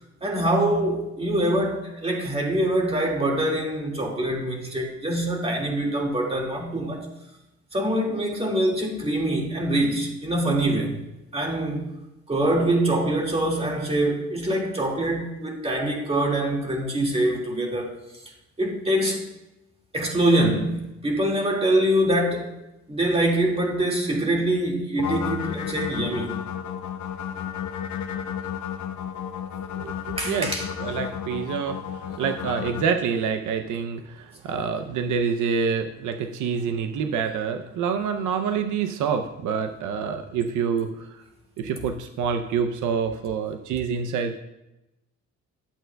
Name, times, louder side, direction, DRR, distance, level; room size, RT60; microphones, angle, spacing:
voice 1, 0.2-7.1 7.7-11.0 11.3-11.9 12.3-17.9 18.6-19.2 19.9-22.5 22.9-26.4 30.2-30.7, right 1 dB, 20° right, 2.0 m, -24 dB
sound 1, 25.0-32.8, left 8 dB, 70° left, 0.7 m, -32 dB
voice 2, 29.8-30.5 30.8-41.1 41.6-44.4, right 6 dB, 80° right, 0.6 m, -27 dB
11.5 x 7.5 x 2.2 m
cardioid pair, 90°, 30 cm